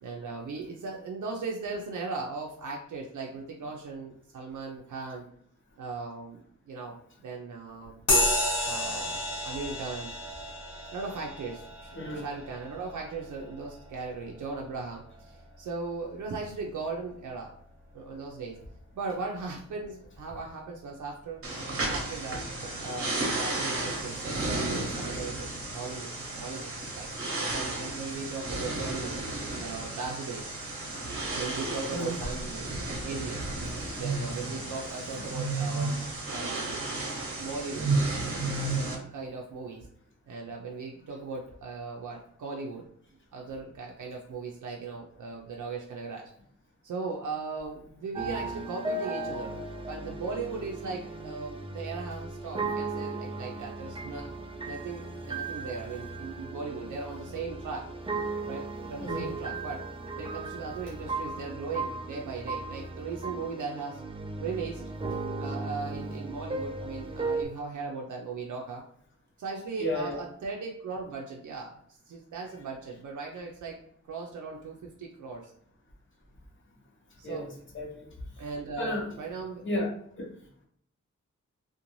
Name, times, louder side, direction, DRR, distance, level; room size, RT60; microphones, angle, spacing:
voice 1, 0.0-5.2 5.8-8.0 8.6-10.1 10.8-17.5 17.9-18.6 18.9-21.4 21.8-22.4 22.8-27.1 27.5-29.2 29.6-30.5 31.3-32.7 33.0-33.4 33.9-36.8 37.4-37.9 38.6-39.9 40.3-42.9 43.3-46.3 46.8-49.6 49.9-54.3 54.6-57.9 58.5-59.9 60.2-64.0 64.4-64.8 65.4-68.8 69.4-71.8 72.1-73.8 74.1-75.5 77.2-77.5 78.4-79.6, right 4 dB, 80° right, -1 dB, 0.5 m, -38 dB
sound 1, 8.1-16.0, left 1 dB, 70° left, 0.8 m, -32 dB
voice 2, 12.0-12.3 31.9-32.2 38.6-38.7 59.0-59.3 69.8-70.2 77.2-77.5 77.7-78.1 78.8-79.0 79.6-79.9, left 1 dB, 40° left, 0 dB, 0.7 m, -32 dB
sound 2, 21.4-39.0, right 2 dB, 50° right, 0.7 m, -33 dB
sound 3, 48.1-67.4, right 3 dB, 20° right, 0.3 m, -36 dB
2.6 x 2.1 x 3.0 m, 0.66 s
wide cardioid pair, 165°, 30 cm